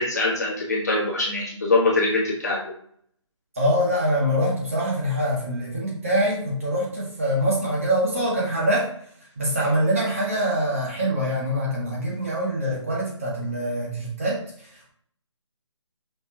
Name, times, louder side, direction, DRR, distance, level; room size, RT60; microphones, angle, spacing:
voice 1, 0.0-2.6, left 2 dB, 35° left, -3 dB, 1.6 m, -23 dB
voice 2, 3.5-8.9 9.4-14.9, equal, 25° right, -4 dB, 1.7 m, -24 dB
6.1 x 5.4 x 2.9 m, 0.62 s
hypercardioid pair, 180°, 16 cm